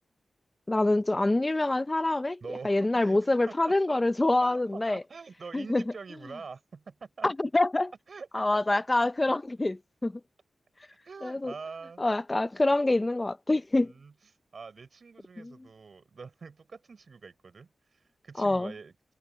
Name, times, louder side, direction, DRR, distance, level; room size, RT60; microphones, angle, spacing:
voice 1, 0.7-2.4 2.6-5.0 5.5-5.8 7.2-7.9 8.3-9.8 10.0-10.2 11.2-11.5 12.0-13.9 15.4-15.5 18.4-18.7, left 2 dB, 25° left, 0.7 m, -26 dB
voice 2, 2.4-3.2 3.5-4.0 4.4-7.3 8.1-8.8 11.0-12.0 13.8-14.1 14.5-18.9, right 5 dB, 60° right, 6.8 m, -45 dB
cardioid pair, 60°, 0 cm